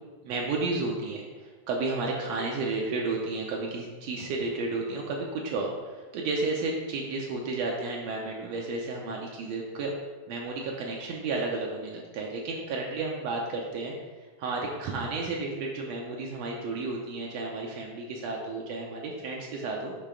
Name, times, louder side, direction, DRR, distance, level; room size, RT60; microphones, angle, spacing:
voice 1, 0.2-9.9 10.3-13.9 14.4-20.0, right 3 dB, 85° right, -1 dB, 1.5 m, -32 dB
6.5 x 3.2 x 5.0 m, 1.3 s
omnidirectional pair, 3.8 m